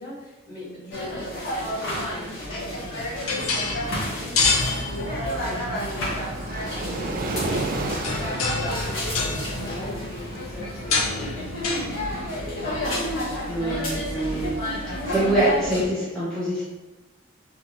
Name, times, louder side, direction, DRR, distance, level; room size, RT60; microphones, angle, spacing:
voice 1, 0.0-12.0, equal, 45° left, -7 dB, 1.0 m, -42 dB
sound 1, 0.9-15.9, left 1 dB, 70° left, 0.9 m, -30 dB
sound 2, 2.7-14.1, left 3 dB, 90° left, 0.5 m, -30 dB
Waves surf, 5.0-12.1, right 2 dB, 45° right, 0.3 m, -34 dB
voice 2, 13.5-14.6 14.8-16.6, right 1 dB, 5° left, -9 dB, 0.6 m, -25 dB
2.7 x 2.3 x 2.9 m, 1.1 s
head